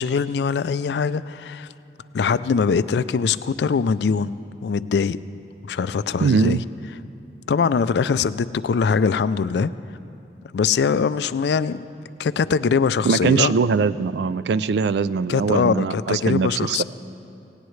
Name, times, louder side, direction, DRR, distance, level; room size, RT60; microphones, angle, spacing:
voice 1, 0.0-1.7 2.1-5.2 5.6-6.6 7.5-9.7 10.5-11.8 12.2-13.5 15.3-16.8, left 5 dB, 75° left, 15 dB, 0.3 m, -22 dB
voice 2, 6.2-6.6 13.0-16.8, right 5 dB, 75° right, 17 dB, 0.3 m, -21 dB
18.5 x 17.5 x 3.2 m, 2.7 s
head